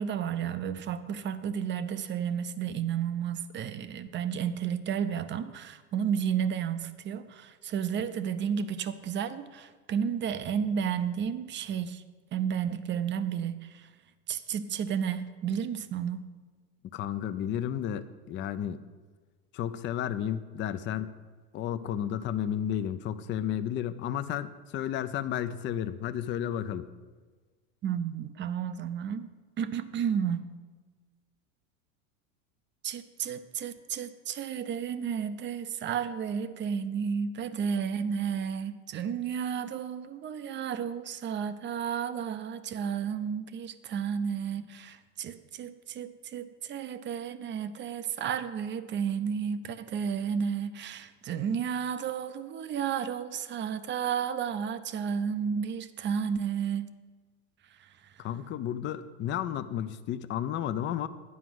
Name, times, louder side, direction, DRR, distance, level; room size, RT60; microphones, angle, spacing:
voice 1, 0.0-12.0 12.3-13.9 14.3-16.2 27.8-29.3 29.6-30.5 32.8-56.9 57.8-58.1, right 7 dB, 25° right, 12 dB, 0.5 m, -32 dB
voice 2, 16.9-18.8 19.5-21.1 21.5-26.9 58.2-61.1, left 10 dB, 30° left, 11 dB, 0.4 m, -32 dB
9.4 x 4.9 x 7.7 m, 1.4 s
hypercardioid pair, 100°, 43 cm